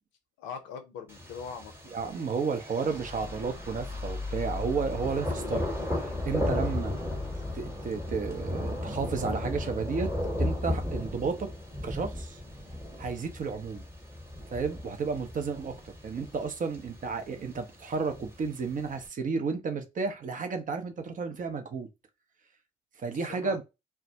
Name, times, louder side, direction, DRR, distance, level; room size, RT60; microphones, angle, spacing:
voice 1, 0.4-2.3 23.1-23.6, left 6 dB, 70° left, 0.6 m, -43 dB
Thunder, 1.1-19.1, left 1 dB, 10° right, 1.0 m, -36 dB
voice 2, 1.9-5.7 6.0-6.9 7.5-10.1 10.4-11.5 11.8-12.4 13.0-13.8 14.5-21.9 23.0-23.6, right 5 dB, 40° right, 0.6 m, -32 dB
sound 1, 2.9-11.2, left 3 dB, 10° left, 0.8 m, -40 dB
2.2 x 2.1 x 2.7 m
hypercardioid pair, 45°, 21 cm